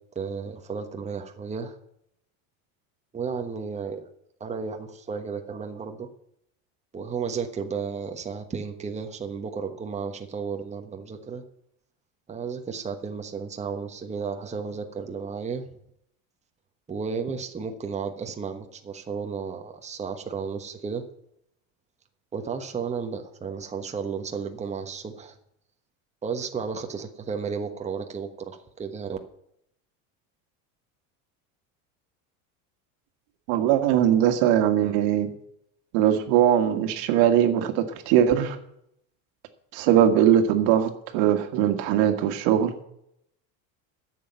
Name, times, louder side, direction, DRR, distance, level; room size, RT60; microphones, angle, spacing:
voice 1, 0.1-1.8 3.1-4.1 4.4-6.1 6.9-11.4 12.3-15.6 16.9-21.0 22.3-25.4 26.2-29.2, right 5 dB, 15° right, 4 dB, 1.2 m, -33 dB
voice 2, 33.5-35.3 35.9-38.6 39.7-42.7, right 10 dB, 70° right, 7 dB, 1.7 m, -21 dB
10.0 x 7.6 x 9.0 m, 0.75 s
supercardioid pair, 120°, 38 cm